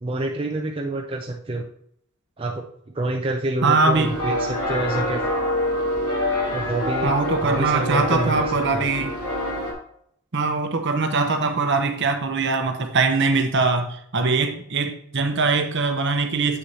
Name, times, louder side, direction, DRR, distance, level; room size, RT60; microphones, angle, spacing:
voice 1, 0.0-1.7 2.4-2.6 2.9-5.2 6.5-7.1 7.4-8.5 8.7-8.9, right 2 dB, 25° right, 1 dB, 0.5 m, -27 dB
voice 2, 3.6-4.3 7.0-9.1 10.3-16.6, right 3 dB, 50° right, 6 dB, 0.8 m, -22 dB
sound 1, 3.9-9.7, left 1 dB, 85° left, 2.6 m, -26 dB
7.7 x 6.4 x 2.8 m, 0.69 s
head